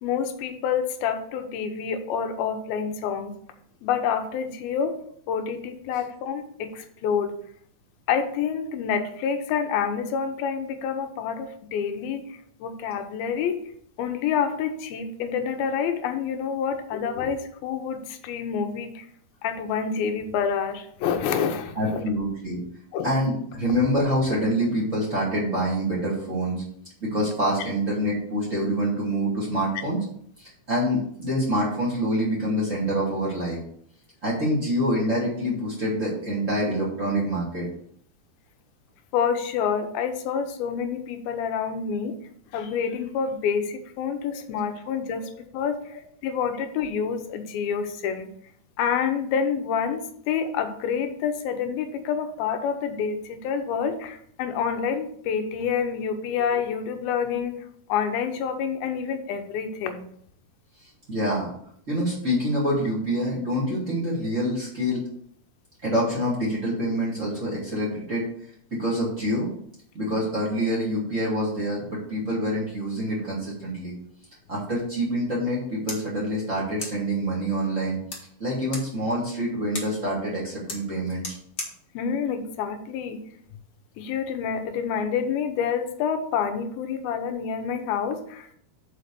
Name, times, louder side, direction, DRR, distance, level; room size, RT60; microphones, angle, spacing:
voice 1, 0.0-3.3 3.8-5.0 5.3-7.4 8.1-13.6 14.0-19.1 19.4-22.0 22.9-23.1 39.1-42.2 42.5-48.3 48.8-57.6 57.9-60.1 81.9-83.2 84.0-88.6, left 7 dB, 90° left, 6 dB, 2.7 m, -28 dB
voice 2, 16.9-17.2 21.8-22.6 23.0-26.6 27.0-30.0 30.4-33.6 34.2-37.7 44.3-44.4 61.1-61.5 61.9-65.1 65.8-68.2 68.7-69.5 69.9-73.9 74.5-78.0 78.4-81.4, equal, 25° right, -4 dB, 2.0 m, -26 dB
sound 1, 75.5-83.5, left 2 dB, 35° left, 1.4 m, -42 dB
6.5 x 5.0 x 6.7 m, 0.66 s
omnidirectional pair, 4.2 m